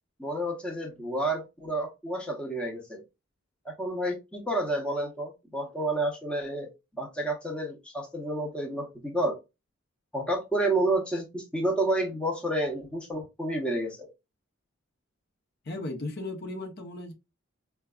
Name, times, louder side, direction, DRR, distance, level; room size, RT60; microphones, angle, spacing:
voice 1, 0.2-3.0 3.6-9.4 10.1-14.1, right 1 dB, 5° left, 0.7 m, -30 dB
voice 2, 15.6-17.1, left 2 dB, 50° left, 0.7 m, -36 dB
4.5 x 2.2 x 2.3 m
head